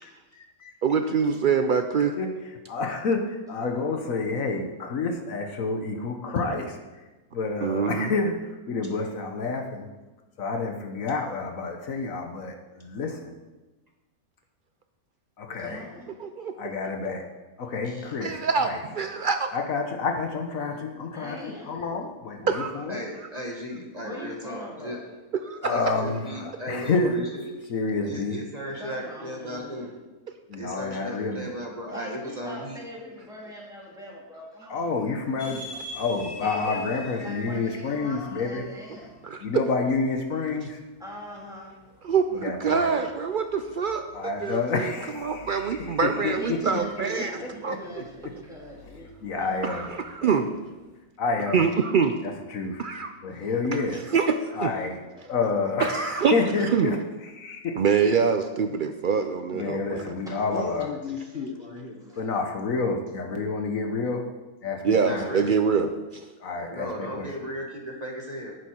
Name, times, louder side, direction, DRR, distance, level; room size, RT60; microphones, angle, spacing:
voice 1, 0.0-0.7 2.2-2.4 2.7-6.8 7.3-9.9 10.4-13.4 15.4-15.8 16.6-17.3 17.6-18.8 19.5-23.0 25.6-27.2 27.7-28.4 30.5-31.5 34.7-35.7 35.9-38.6 39.4-40.8 42.3-42.9 44.1-46.8 47.4-47.8 49.2-49.9 51.2-51.6 52.2-52.8 53.2-54.0 54.5-55.0 55.3-57.0 57.2-57.8 59.5-60.9 62.2-64.3 64.6-65.2 66.4-67.3, left 4 dB, 65° left, 4 dB, 1.4 m, -29 dB
voice 2, 0.8-2.2 7.6-8.1 16.2-16.5 18.2-19.5 22.5-22.8 23.2-23.3 25.4-25.8 39.2-39.6 42.0-44.1 44.4-47.3 47.6-47.8 49.6-50.5 51.5-52.2 52.8-53.1 53.7-54.7 55.8-56.3 56.7-57.0 57.8-60.0 64.8-66.2, right 6 dB, 85° right, 7 dB, 0.4 m, -25 dB
voice 3, 15.6-16.1 21.1-21.8 24.0-25.0 28.7-29.9 31.9-35.0 36.4-39.2 41.0-41.7 46.4-49.1 49.4-49.8 50.2-50.4 54.7-55.3 60.2-60.6 62.0-62.2 66.8-66.9, left 1 dB, ahead, -5 dB, 3.1 m, -42 dB
voice 4, 22.9-25.0 25.7-27.4 28.1-29.9 30.6-32.8 65.0-65.5 66.7-68.6, equal, 30° right, 0 dB, 1.3 m, -36 dB
sound 1, 35.4-51.0, left 2 dB, 90° left, 3.3 m, -46 dB
voice 5, 59.6-60.1 60.5-62.2, left 5 dB, 45° left, 2 dB, 1.2 m, -36 dB
11.0 x 9.3 x 4.4 m, 1.2 s
omnidirectional pair, 1.6 m